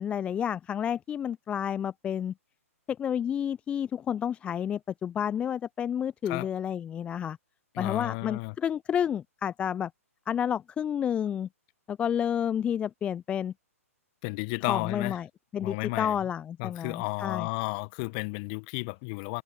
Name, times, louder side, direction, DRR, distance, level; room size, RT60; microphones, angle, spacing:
voice 1, 0.0-2.3 2.9-7.4 7.8-9.9 10.3-11.5 11.9-13.5 14.7-15.3 15.5-17.5, left 9 dB, 15° left, 0.5 m, -30 dB
voice 2, 7.7-8.5 14.2-15.2 15.6-16.2 16.6-19.4, left 31 dB, 35° left, 1.4 m, -33 dB
figure-of-eight pair, 120°, 8 cm